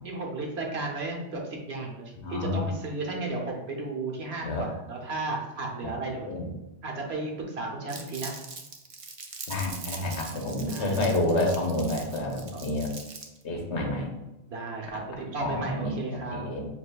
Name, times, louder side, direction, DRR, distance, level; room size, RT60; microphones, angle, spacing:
voice 1, 0.0-6.3 6.8-8.3 10.7-11.0 12.5-12.6 14.5-16.5, right 2 dB, 65° right, 0 dB, 1.1 m, -34 dB
voice 2, 2.2-2.7 4.4-4.7 5.8-5.9 6.2-6.5 9.5-12.9 13.4-14.1 15.4-16.7, left 1 dB, 75° left, 1 dB, 1.1 m, -29 dB
Crumpling crinkling, 7.9-13.4, right 4 dB, 50° right, 0.4 m, -41 dB
7.0 x 2.7 x 2.3 m, 0.96 s
omnidirectional pair, 1.2 m